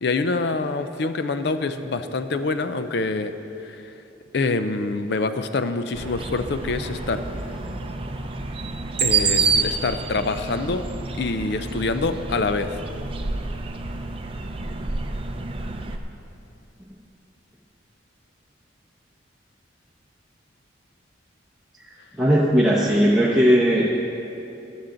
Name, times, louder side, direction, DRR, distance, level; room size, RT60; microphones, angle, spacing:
voice 1, 0.0-3.3 3.6-3.8 4.3-7.2 9.0-10.8 11.2-12.8, left 3 dB, 60° left, 10 dB, 0.5 m, -25 dB
sound 1, 5.9-16.0, right 4 dB, 30° right, 0.5 m, -28 dB
voice 2, 22.2-23.9, equal, 5° right, -7 dB, 0.9 m, -17 dB
14.0 x 10.5 x 3.9 m, 2.9 s
head